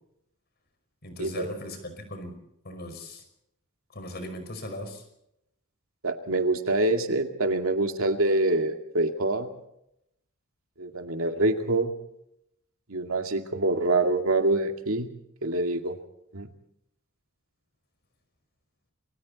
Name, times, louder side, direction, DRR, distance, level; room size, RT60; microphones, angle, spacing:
voice 1, 1.0-2.4 2.6-3.2 3.9-5.0, left 1 dB, 50° left, 8 dB, 5.4 m, -38 dB
voice 2, 6.0-9.5 10.8-11.9 12.9-15.1 15.4-15.9 16.3-16.5, right 2 dB, 75° right, 5 dB, 2.3 m, -25 dB
29.0 x 22.5 x 4.2 m, 0.79 s
head